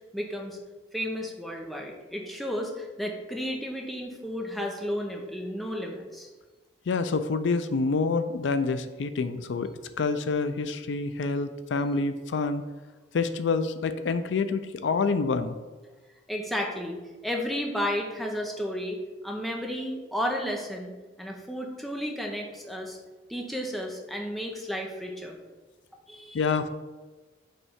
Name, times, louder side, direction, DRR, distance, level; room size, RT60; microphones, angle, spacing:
voice 1, 0.1-0.6 0.9-6.3 16.3-17.0 17.2-19.0 19.2-20.9 21.2-23.0 23.3-25.4 26.1-26.4, equal, ahead, 0 dB, 0.7 m, -32 dB
voice 2, 6.9-12.6 13.1-15.6 26.3-26.7, left 4 dB, 70° left, 11 dB, 0.4 m, -27 dB
5.5 x 3.3 x 5.6 m, 1.3 s
head